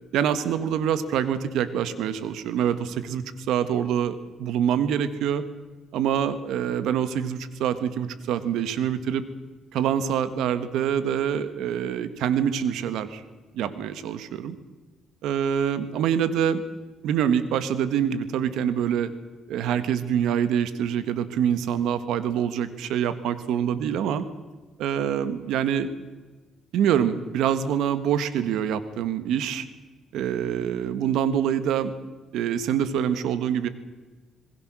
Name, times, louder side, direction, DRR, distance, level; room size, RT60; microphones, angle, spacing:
voice 1, 0.1-5.4 5.9-9.2 9.7-13.2 13.5-14.6 15.2-16.6 17.0-19.1 19.5-24.3 24.8-25.9 26.7-29.7 30.1-31.9 32.3-33.7, right 9 dB, 85° right, 12 dB, 1.6 m, -25 dB
27.0 x 20.5 x 6.3 m, 1.3 s
cardioid pair, 90°, 0 cm